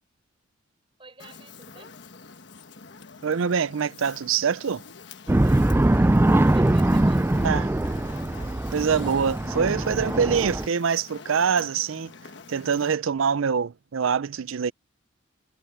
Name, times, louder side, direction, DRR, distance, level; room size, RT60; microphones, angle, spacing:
voice 1, 1.0-2.0 5.2-5.8 6.5-7.3, right 2 dB, 25° right, 5.5 m, -48 dB
Fire, 1.2-12.9, left 4 dB, 60° left, 1.3 m, -45 dB
voice 2, 3.2-4.8 7.4-7.8 8.7-12.1 12.5-14.7, right 6 dB, 80° right, 0.5 m, -24 dB
sound 1, 5.3-10.7, right 1 dB, 10° right, 0.3 m, -22 dB
head